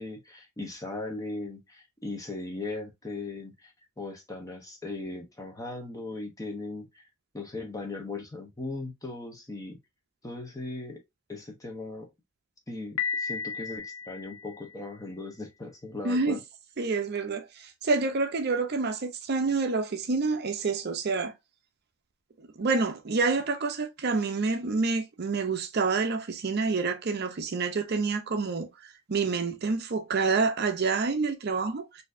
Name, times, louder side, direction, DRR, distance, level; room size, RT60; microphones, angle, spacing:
voice 1, 0.0-7.0 7.3-9.8 10.2-11.0 11.3-12.1 12.7-16.4, left 2 dB, 15° left, 0.7 m, -38 dB
Piano, 13.0-14.9, left 6 dB, 60° left, 0.5 m, -34 dB
voice 2, 16.0-16.4 16.8-21.3 22.6-31.9, right 4 dB, 45° right, 0.5 m, -28 dB
4.2 x 2.6 x 2.5 m
head